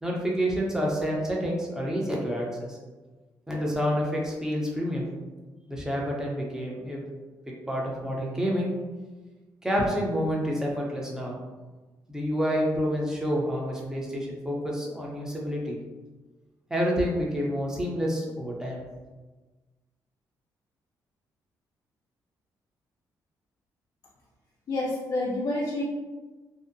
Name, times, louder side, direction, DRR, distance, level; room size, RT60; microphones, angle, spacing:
voice 1, 0.0-2.8 3.5-5.0 5.7-7.0 7.7-8.7 9.6-11.4 12.1-15.8 16.7-18.8, equal, 10° right, -3 dB, 0.5 m, -28 dB
voice 2, 24.7-25.8, left 2 dB, 55° left, -5 dB, 0.4 m, -28 dB
2.6 x 2.0 x 2.5 m, 1.2 s
cardioid pair, 105°, 7 cm